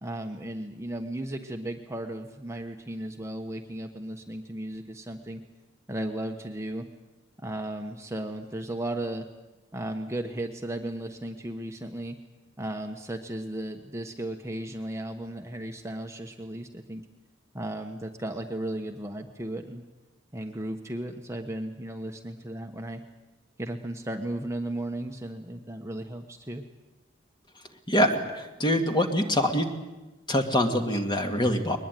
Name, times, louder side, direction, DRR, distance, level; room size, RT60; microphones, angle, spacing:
voice 1, 0.0-5.4 5.9-6.9 7.4-9.3 9.7-12.2 12.6-17.0 17.5-19.8 20.3-23.0 23.6-26.6, right 1 dB, 15° right, 4 dB, 1.2 m, -35 dB
voice 2, 27.9-29.7 30.3-31.8, left 1 dB, 25° left, 4 dB, 2.2 m, -24 dB
22.0 x 20.5 x 9.2 m, 1.1 s
head